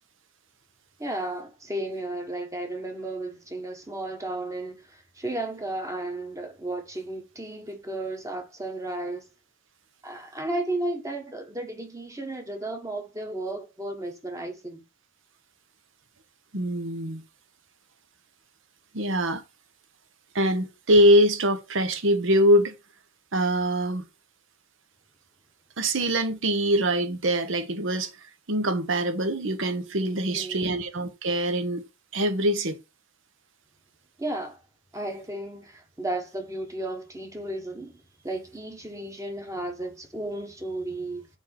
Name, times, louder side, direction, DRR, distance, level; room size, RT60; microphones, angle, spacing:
voice 1, 1.0-9.3 10.0-14.8 30.3-30.8 34.2-34.6 34.9-41.3, right 2 dB, 15° right, 1.2 m, -34 dB
voice 2, 16.5-17.2 18.9-19.4 20.3-22.7 23.3-24.1 25.8-28.1 28.5-31.8 32.1-32.8, equal, 60° right, 0.9 m, -23 dB
4.4 x 4.4 x 5.7 m
head